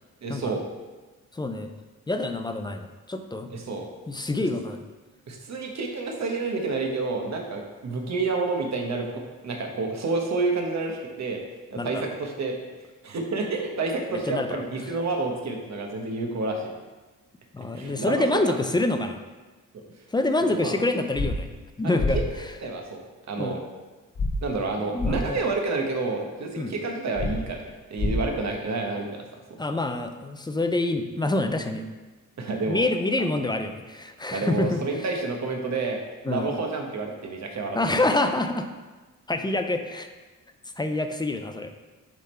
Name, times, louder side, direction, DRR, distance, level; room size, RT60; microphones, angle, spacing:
voice 1, 0.2-0.6 3.5-3.9 5.3-9.1 9.4-11.4 11.7-12.6 13.0-16.7 17.7-18.6 19.7-19.8 20.4-20.7 21.8-22.2 22.6-23.0 23.3-23.6 24.4-27.6 27.9-29.2 29.5-29.6 32.4-32.8 34.3-37.8, right 3 dB, 55° right, 2 dB, 1.0 m, -29 dB
voice 2, 1.3-1.7 2.1-3.5 4.1-4.8 11.8-12.1 14.1-14.6 17.5-19.2 20.1-21.5 21.8-22.5 23.4-23.6 24.9-25.4 26.6-26.7 29.6-31.9 32.6-34.8 36.2-36.5 37.7-38.7 39.3-40.1 40.8-41.7, left 2 dB, 15° left, 6 dB, 0.3 m, -26 dB
sound 1, 21.1-21.3 22.0-22.1 24.2-24.3 25.0-25.1 27.1-27.3 28.0-28.1, left 3 dB, 45° left, 1.3 m, -25 dB
7.5 x 3.6 x 4.3 m, 1.2 s
wide cardioid pair, 145°, 33 cm